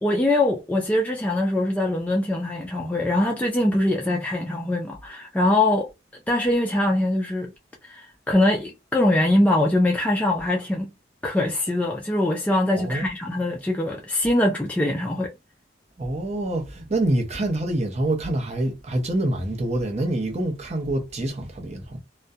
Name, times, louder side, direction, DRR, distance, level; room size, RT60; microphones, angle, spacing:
voice 1, 0.0-5.9 6.3-7.5 7.8-10.9 11.2-15.3, left 1 dB, 10° left, 0.3 m, -22 dB
voice 2, 12.8-13.1 16.0-22.0, right 1 dB, 35° right, 0.6 m, -26 dB
2.3 x 2.1 x 2.6 m
head